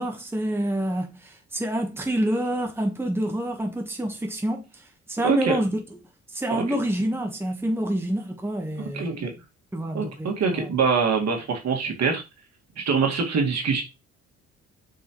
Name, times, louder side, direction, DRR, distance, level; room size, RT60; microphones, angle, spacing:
voice 1, 0.0-4.8 5.1-5.8 6.3-9.1 9.7-10.7, right 1 dB, 10° right, 1.3 m, -27 dB
voice 2, 5.2-5.6 6.5-6.6 8.9-9.3 9.9-12.2 12.8-13.8, right 5 dB, 60° right, 2.1 m, -24 dB
6.9 x 4.7 x 3.1 m
cardioid pair, 90°, 30 cm